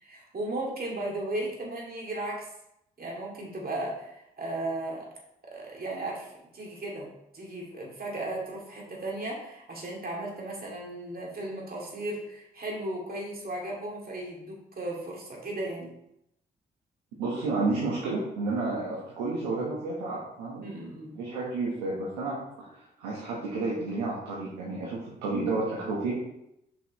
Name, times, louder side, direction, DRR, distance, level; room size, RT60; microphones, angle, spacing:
voice 1, 0.0-2.5 3.0-5.1 5.4-15.9 20.6-21.2, right 1 dB, 45° right, -2 dB, 2.7 m, -36 dB
voice 2, 17.2-20.6 21.1-26.1, right 3 dB, 90° right, -5 dB, 1.3 m, -31 dB
6.8 x 5.8 x 3.1 m, 0.81 s
hypercardioid pair, 40°, 21 cm